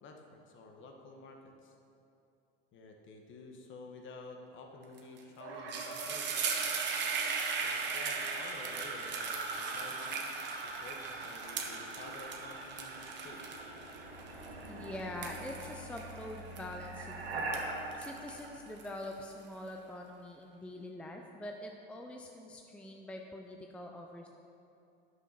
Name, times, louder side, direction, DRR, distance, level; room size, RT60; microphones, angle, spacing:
voice 1, 0.0-1.7 2.7-6.3 7.6-10.2 10.6-13.4, left 3 dB, 40° left, 3 dB, 1.5 m, -51 dB
sound 1, 5.0-5.2 5.5-17.0 17.4-19.3, right 5 dB, 35° right, 1.3 m, -38 dB
sound 2, 5.4-19.3, right 2 dB, 85° right, 1.6 m, -45 dB
voice 2, 14.7-24.3, left 1 dB, 5° left, 2 dB, 0.6 m, -45 dB
9.1 x 6.5 x 5.8 m, 2.7 s
hypercardioid pair, 90°, 29 cm